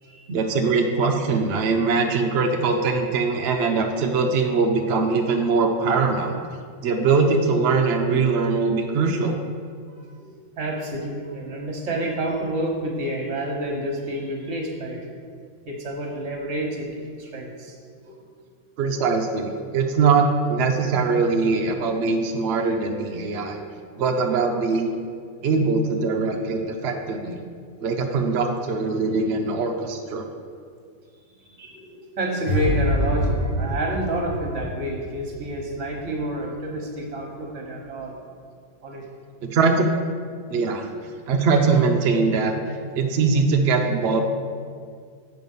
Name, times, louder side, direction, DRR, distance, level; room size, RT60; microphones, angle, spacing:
voice 1, 0.3-6.4 6.8-9.3 18.8-23.6 24.0-24.9 25.4-27.4 27.8-30.3 39.4-39.9 40.5-40.9 41.3-42.5 43.0-44.2, right 4 dB, 65° right, 2 dB, 0.6 m, -22 dB
voice 2, 9.9-15.1 15.7-17.8 18.0-18.2 20.9-21.0 23.3-23.5 31.3-38.2 38.8-39.0, right 1 dB, 50° right, 1 dB, 1.4 m, -29 dB
sound 1, 32.5-35.6 35.9-36.2, equal, 55° left, 2.0 m, -25 dB
7.8 x 4.8 x 5.4 m, 2.1 s
omnidirectional pair, 1.7 m